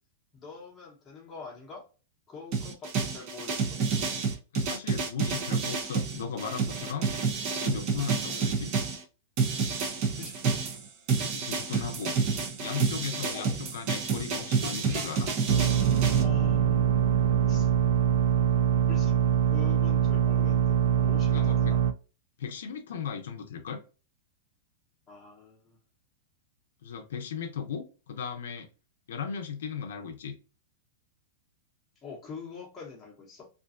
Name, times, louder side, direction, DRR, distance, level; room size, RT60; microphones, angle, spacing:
voice 1, 0.3-1.9 2.3-3.8 8.3-8.5 10.2-10.6 13.3-13.5 16.1-17.1 17.5-17.7 18.9-19.2 19.5-21.8 25.1-25.8 32.0-33.5, left 5 dB, 15° left, 0.9 m, -44 dB
sound 1, 2.5-9.0 9.4-16.2, right 5 dB, 35° right, 0.5 m, -29 dB
voice 2, 4.5-7.1 7.5-8.7 11.2-12.2 12.6-15.3 21.3-21.7 22.4-23.8 26.8-28.7 29.1-30.4, left 7 dB, 80° left, 0.6 m, -36 dB
sound 2, 15.5-21.9, right 9 dB, 85° right, 0.3 m, -24 dB
2.5 x 2.3 x 2.5 m
supercardioid pair, 165°, 0 cm